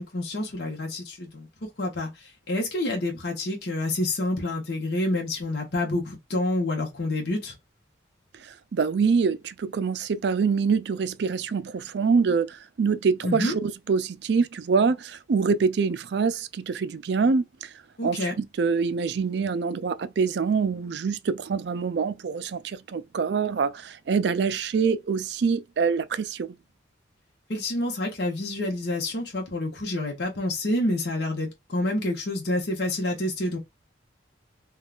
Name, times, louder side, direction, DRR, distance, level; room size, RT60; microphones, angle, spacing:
voice 1, 0.0-1.5 1.8-7.6 13.2-13.6 18.0-18.3 27.5-33.6, left 1 dB, 60° left, 0.9 m, -28 dB
voice 2, 8.4-17.7 18.0-26.5, right 5 dB, 60° right, 0.4 m, -25 dB
3.5 x 2.3 x 2.4 m
head